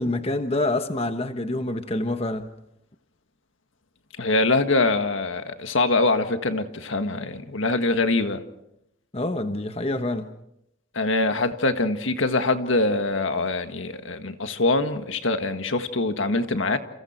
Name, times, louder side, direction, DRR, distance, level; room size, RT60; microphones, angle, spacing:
voice 1, 0.0-2.5 9.1-10.3, left 2 dB, 30° left, 1.2 m, -26 dB
voice 2, 4.2-8.4 10.9-16.8, left 2 dB, 80° left, 1.8 m, -24 dB
29.5 x 29.0 x 4.5 m
head